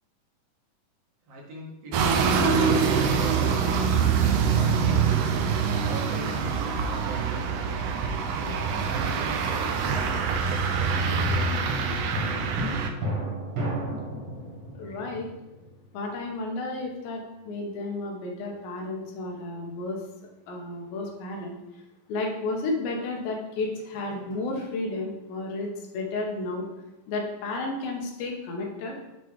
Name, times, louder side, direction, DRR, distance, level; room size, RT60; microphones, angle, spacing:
voice 1, 1.2-3.9 4.5-5.1 5.8-7.7 8.3-9.6 9.9-10.3 10.9-12.0, right 1 dB, 65° right, -2 dB, 1.6 m, -41 dB
sound 1, 1.9-12.9, right 6 dB, 85° right, 1.8 m, -25 dB
sound 2, 10.8-16.1 23.6-24.7, right 1 dB, 50° right, 1.8 m, -34 dB
voice 2, 14.8-15.3 15.9-20.0 20.5-21.5 22.1-25.7 25.9-26.7 27.1-29.0, left 2 dB, 90° left, 1 dB, 2.8 m, -32 dB
7.6 x 3.1 x 4.6 m, 0.99 s
omnidirectional pair, 4.1 m